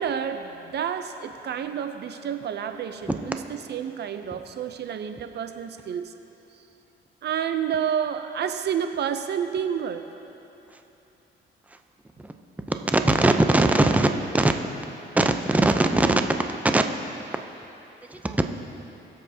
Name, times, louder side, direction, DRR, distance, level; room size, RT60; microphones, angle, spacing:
voice 1, 0.0-6.1 6.6-6.7 7.2-10.2, right 8 dB, 60° right, 8 dB, 0.6 m, -29 dB
voice 2, 12.8-14.1 14.3-14.5 15.1-16.8 17.3-17.4 18.1-18.5, right 2 dB, 5° right, 6 dB, 0.6 m, -20 dB
21.0 x 7.7 x 2.8 m, 3.0 s
cardioid pair, 90°, 20 cm